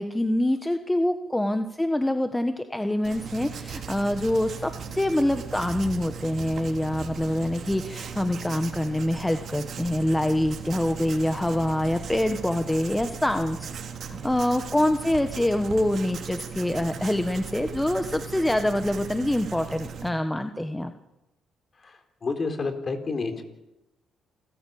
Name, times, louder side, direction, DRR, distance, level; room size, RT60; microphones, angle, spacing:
voice 1, 0.0-13.7 14.1-20.9, left 1 dB, 10° left, 7 dB, 1.4 m, -25 dB
Writing, 3.0-20.1, right 6 dB, 60° right, 3.0 m, -38 dB
voice 2, 21.8-23.4, left 4 dB, 40° left, 7 dB, 3.8 m, -30 dB
28.5 x 14.5 x 8.7 m, 0.96 s
cardioid pair, 90°, 0 cm